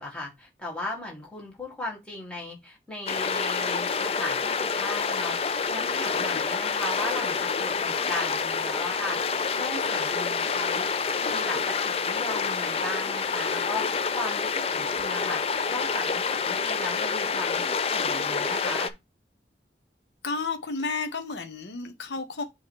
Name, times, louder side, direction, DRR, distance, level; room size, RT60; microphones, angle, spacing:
voice 1, 0.0-10.9 11.2-18.9, left 2 dB, 5° left, 1.7 m, -37 dB
sound 1, 3.1-18.9, left 5 dB, 35° left, 0.4 m, -27 dB
voice 2, 20.2-22.4, left 4 dB, 80° left, 0.8 m, -32 dB
7.4 x 2.9 x 4.6 m
head